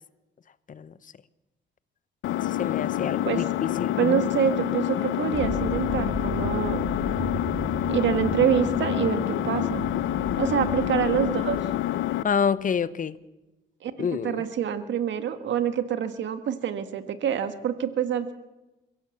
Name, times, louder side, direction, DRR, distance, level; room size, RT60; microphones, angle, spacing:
Engine, 2.2-12.2, left 14 dB, 75° left, 0.7 m, -27 dB
voice 1, 2.4-4.2 12.2-13.1 14.0-14.4, left 7 dB, 40° left, 17 dB, 0.9 m, -28 dB
voice 2, 4.0-6.8 7.2-7.3 7.9-9.9 10.4-11.6 13.8-18.3, right 8 dB, 70° right, 10 dB, 1.7 m, -26 dB
sound 1, 5.3-12.1, right 2 dB, 50° right, 6.5 m, -35 dB
23.0 x 16.5 x 7.2 m, 1.0 s
cardioid pair, 90°, 20 cm